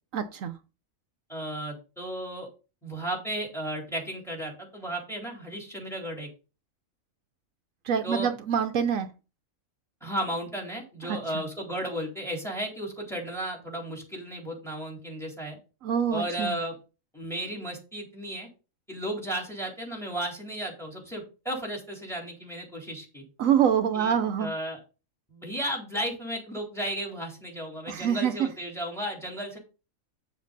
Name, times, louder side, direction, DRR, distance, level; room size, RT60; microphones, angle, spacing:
voice 1, 0.1-0.5 7.9-9.1 11.1-11.4 15.8-16.6 23.4-24.5 27.9-28.3, right 8 dB, 75° right, 8 dB, 1.1 m, -26 dB
voice 2, 1.3-2.5 2.8-6.3 8.0-8.3 10.0-15.6 16.1-16.8 17.1-18.5 18.9-23.2 23.9-24.8 25.3-29.6, right 1 dB, ahead, -1 dB, 3.8 m, -34 dB
7.9 x 7.4 x 4.0 m, 0.32 s
omnidirectional pair, 1.4 m